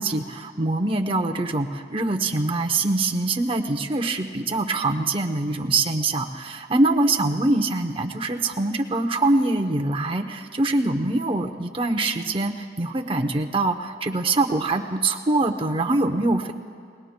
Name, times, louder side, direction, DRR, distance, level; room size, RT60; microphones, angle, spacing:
voice 1, 0.0-16.5, right 2 dB, 30° right, 5 dB, 0.7 m, -24 dB
29.0 x 19.5 x 2.2 m, 2.3 s
head